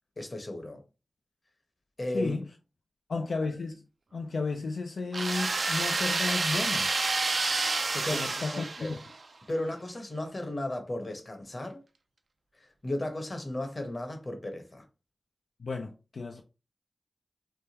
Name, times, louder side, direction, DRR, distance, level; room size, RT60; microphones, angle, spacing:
voice 1, 0.2-0.8 2.0-2.4 8.0-8.9 9.5-11.8 12.8-14.8, left 1 dB, 50° left, 0.9 m, -35 dB
voice 2, 2.1-2.4 3.1-3.8 4.1-6.9 7.9-9.0 15.6-16.4, left 3 dB, 85° left, 0.3 m, -33 dB
sound 1, 5.1-9.2, right 3 dB, 70° right, 0.4 m, -29 dB
3.4 x 2.2 x 2.8 m
cardioid pair, 45°, 0 cm